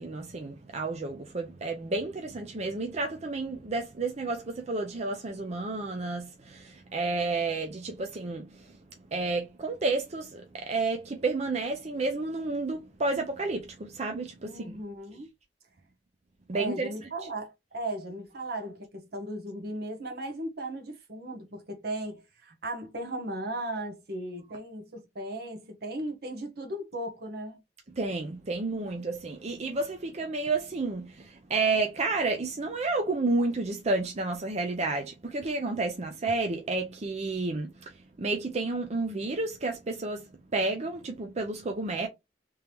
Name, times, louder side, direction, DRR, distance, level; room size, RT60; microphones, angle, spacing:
voice 1, 0.0-8.8 9.1-14.8 16.5-17.1 27.9-42.1, right 3 dB, 40° right, 0.6 m, -31 dB
voice 2, 14.4-15.3 16.5-27.6, right 1 dB, 60° right, 1.2 m, -37 dB
3.5 x 3.0 x 3.3 m
head